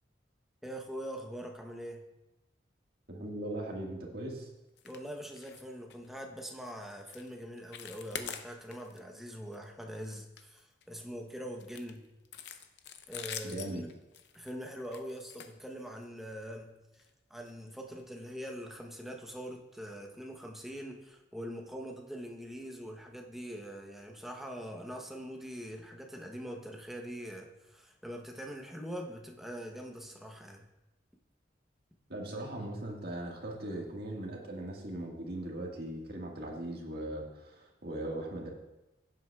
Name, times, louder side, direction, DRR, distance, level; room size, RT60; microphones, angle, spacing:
voice 1, 0.6-2.1 4.8-12.0 13.1-13.9 14.3-17.0 17.3-30.6, equal, ahead, 1 dB, 0.9 m, -43 dB
voice 2, 3.1-4.5 13.4-13.8 32.1-38.5, right 1 dB, 60° right, -1 dB, 1.8 m, -39 dB
sound 1, 4.8-5.0 5.3-5.6 5.9-6.1 6.5-6.7 7.1-7.3 7.6-9.0 9.3-9.6 9.9-11.0 11.6-16.2 16.9-17.1 17.5-17.6 18.0-18.1, left 8 dB, 65° left, 0.7 m, -45 dB
16.0 x 7.8 x 2.4 m, 1.0 s
head